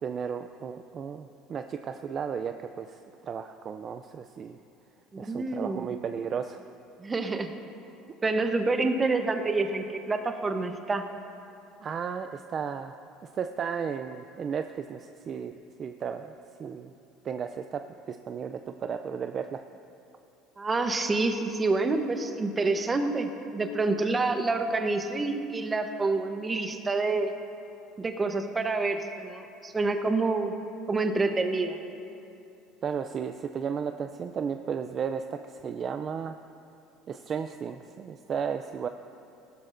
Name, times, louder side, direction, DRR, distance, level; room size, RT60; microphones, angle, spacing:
voice 1, 0.0-4.6 5.2-6.6 11.8-13.0 13.3-15.5 15.8-16.3 16.6-16.9 17.2-17.8 18.1-19.6 32.8-36.4 37.1-38.9, right 7 dB, 35° right, 8 dB, 0.4 m, -34 dB
voice 2, 5.1-5.9 7.0-7.5 8.2-11.0 20.6-27.3 28.0-30.5 30.9-31.8, right 3 dB, 20° right, 7 dB, 0.8 m, -27 dB
17.5 x 12.5 x 2.6 m, 2.7 s
supercardioid pair, 120°, 0 cm